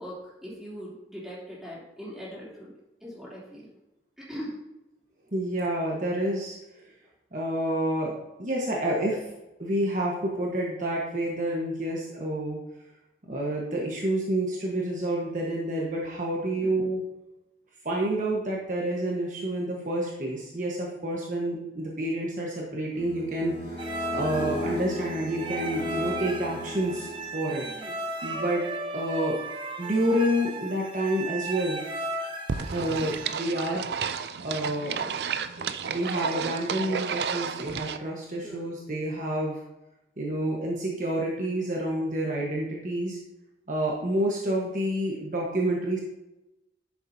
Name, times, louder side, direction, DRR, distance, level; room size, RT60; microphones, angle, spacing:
voice 1, 0.0-2.7 3.0-3.7 4.2-4.6 16.6-16.8 27.6-28.0 28.3-28.6 38.4-38.7, equal, 5° right, -7 dB, 3.0 m, -41 dB
voice 2, 5.3-6.6 7.3-9.3 9.6-12.6 13.3-17.0 17.8-27.7 28.2-29.4 29.8-31.8 32.7-33.8 34.4-35.2 35.6-39.6 40.2-43.2 43.7-46.0, right 1 dB, 45° right, -3 dB, 1.3 m, -29 dB
sound 1, 22.9-27.6, left 2 dB, 80° left, 2.2 m, -36 dB
sound 2, 23.8-33.3, right 2 dB, 30° right, 0.8 m, -36 dB
sound 3, 32.5-38.0, right 6 dB, 65° right, 0.4 m, -32 dB
11.0 x 7.1 x 2.8 m, 0.95 s
head